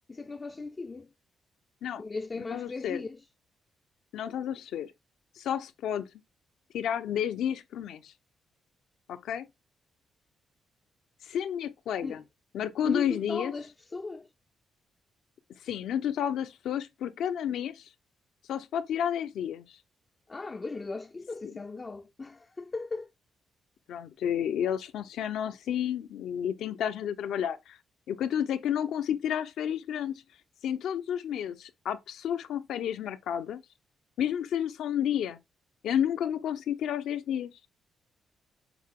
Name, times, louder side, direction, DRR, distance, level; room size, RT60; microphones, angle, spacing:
voice 1, 0.1-1.1 2.0-3.2 12.0-12.2 12.8-14.3 20.3-23.1, left 3 dB, 20° left, 0.3 m, -37 dB
voice 2, 2.5-3.0 4.1-4.9 5.4-6.1 6.7-8.1 9.1-9.5 11.2-12.2 12.5-13.5 15.6-17.9 18.5-19.8 23.9-27.8 28.1-30.1 30.6-33.6 34.2-35.4 35.8-37.5, left 9 dB, 85° left, 0.8 m, -31 dB
7.1 x 4.7 x 3.7 m
wide cardioid pair, 165°, 0 cm